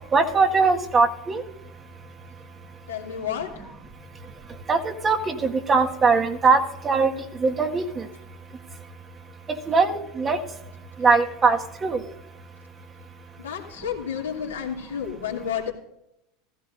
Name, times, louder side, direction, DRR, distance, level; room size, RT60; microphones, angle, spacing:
voice 1, 0.1-1.4 4.7-7.1 7.4-8.1 9.7-10.4 11.0-12.0, right 4 dB, 30° right, 2 dB, 1.8 m, -21 dB
voice 2, 2.9-3.7 13.4-15.7, left 8 dB, 90° left, -1 dB, 2.7 m, -31 dB
15.5 x 15.5 x 2.6 m, 0.81 s
hypercardioid pair, 85°, 0 cm